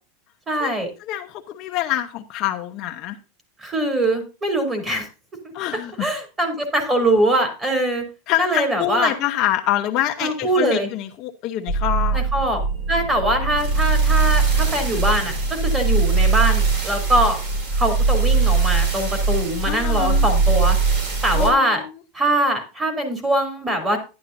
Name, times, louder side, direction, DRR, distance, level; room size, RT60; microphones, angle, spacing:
voice 1, 0.5-0.9 3.6-5.1 6.0-8.0 8.4-9.1 10.2-10.9 12.1-12.6 12.9-17.4 17.8-20.8 21.2-21.8 22.1-24.0, right 1 dB, 15° right, 5 dB, 3.4 m, -22 dB
voice 2, 1.0-3.2 5.5-6.1 8.3-12.2 19.6-20.3 21.3-22.0, left 13 dB, 40° left, 4 dB, 0.9 m, -25 dB
sound 1, 11.7-21.5, right 4 dB, 55° right, 4.6 m, -20 dB
11.5 x 11.0 x 2.7 m, 0.31 s
supercardioid pair, 160°, 0 cm